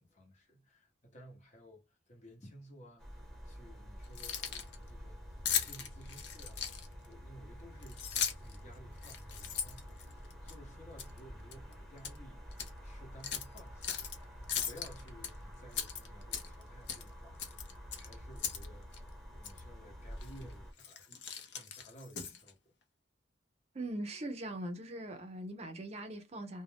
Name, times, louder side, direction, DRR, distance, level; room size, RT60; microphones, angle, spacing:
voice 1, 0.0-21.3 21.5-22.7, equal, 40° left, 0.9 m, -56 dB
sound 1, 3.0-20.7, equal, ahead, 1.1 m, -49 dB
Keys jangling, 4.0-4.8 5.5-7.1 7.8-8.6 9.0-10.5 11.0-11.2 11.5-12.2 12.5-12.7 13.2-14.2 14.5-15.3 15.7-16.6 16.9-17.1 17.4-18.7 18.9-19.0 19.4-19.6 20.2-20.4 20.8-22.5, left 8 dB, 70° left, 0.6 m, -38 dB
voice 2, 23.7-26.6, right 1 dB, 35° right, 0.5 m, -41 dB
2.5 x 2.1 x 3.3 m
head